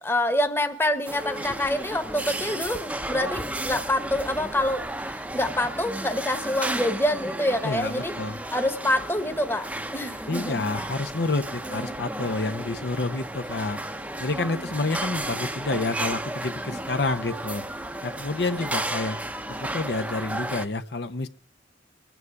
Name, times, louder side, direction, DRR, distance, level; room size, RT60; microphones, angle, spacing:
voice 1, 0.0-8.1 8.5-10.7 11.6-12.0 16.7-16.8, left 1 dB, 10° left, 8 dB, 1.2 m, -27 dB
sound 1, 1.1-20.7, right 1 dB, 5° right, 0.8 m, -33 dB
voice 2, 7.6-8.4 10.3-13.8 14.2-17.6 18.0-19.2 19.5-21.3, left 3 dB, 60° left, 9 dB, 0.8 m, -29 dB
23.5 x 9.3 x 4.7 m, 0.37 s
head